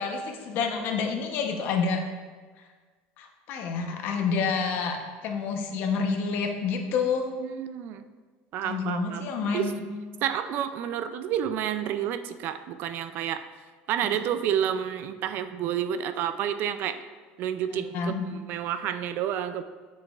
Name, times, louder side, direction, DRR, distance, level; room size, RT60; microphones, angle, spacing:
voice 1, 0.0-2.0 3.2-5.0 5.2-7.3 8.6-9.8 17.9-18.3, left 5 dB, 60° left, 4 dB, 0.8 m, -28 dB
voice 2, 7.4-8.1 8.5-9.7 10.2-13.4 13.9-17.0 17.4-19.6, right 9 dB, 55° right, 11 dB, 0.4 m, -30 dB
7.5 x 6.2 x 2.4 m, 1.4 s
cardioid pair, 130°, 4 cm